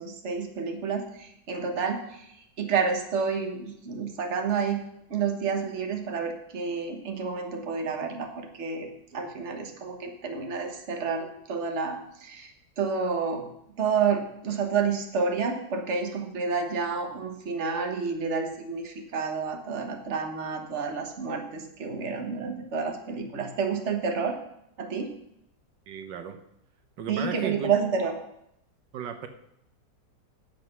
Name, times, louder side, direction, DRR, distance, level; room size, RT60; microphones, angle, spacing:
voice 1, 0.0-4.8 5.1-13.5 13.8-24.4 24.8-25.1 27.1-28.2, right 5 dB, 40° right, 4 dB, 1.6 m, -29 dB
voice 2, 25.9-26.4 27.0-27.7 28.9-29.3, right 7 dB, 80° right, 7 dB, 1.6 m, -34 dB
9.6 x 7.5 x 6.0 m, 0.76 s
omnidirectional pair, 1.9 m